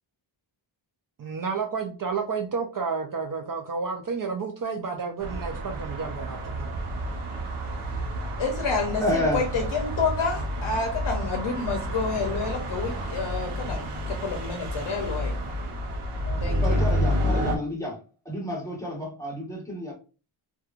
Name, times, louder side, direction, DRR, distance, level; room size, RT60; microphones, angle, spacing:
voice 1, 1.2-6.7, right 5 dB, 45° right, 0.4 m, -31 dB
sound 1, 5.2-17.6, equal, 90° right, 0.7 m, -30 dB
voice 2, 8.4-15.3 16.4-16.8, left 4 dB, 60° left, 0.6 m, -29 dB
voice 3, 9.0-9.4 16.6-18.0 18.2-19.9, left 1 dB, 5° left, 1.0 m, -29 dB
2.9 x 2.3 x 2.4 m
wide cardioid pair, 105°, 49 cm